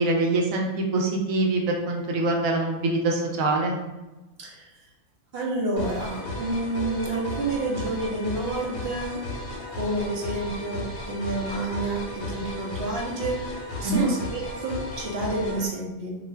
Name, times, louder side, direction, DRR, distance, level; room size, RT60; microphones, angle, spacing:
voice 1, 0.0-3.8 13.8-14.1, right 2 dB, 85° right, 1 dB, 1.0 m, -24 dB
voice 2, 5.3-9.2 9.8-16.2, right 2 dB, 60° right, -2 dB, 0.8 m, -29 dB
sound 1, 5.8-15.7, left 2 dB, 65° left, 0.9 m, -35 dB
2.5 x 2.3 x 3.2 m, 1.1 s
omnidirectional pair, 1.4 m